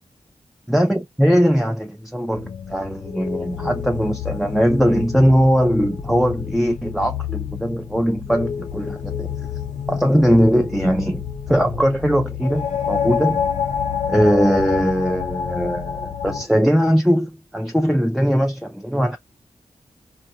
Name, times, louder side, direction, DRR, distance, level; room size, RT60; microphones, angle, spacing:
voice 1, 0.7-9.3 9.9-13.5 14.1-19.2, equal, ahead, 0.4 m, -20 dB
sound 1, 2.3-16.5, left 8 dB, 90° left, 0.6 m, -28 dB
4.4 x 2.4 x 2.8 m
wide cardioid pair, 95°, 12 cm